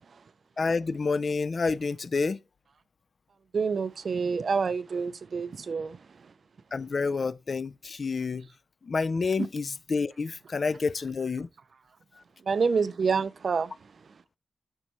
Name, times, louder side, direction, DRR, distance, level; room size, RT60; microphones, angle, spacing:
voice 1, 0.6-2.4 6.7-8.5 8.8-11.5, left 4 dB, 40° left, 0.3 m, -29 dB
voice 2, 3.5-6.0 12.5-13.7, right 5 dB, 50° right, 0.4 m, -27 dB
12.5 x 4.5 x 3.0 m
wide cardioid pair, 155°, 0 cm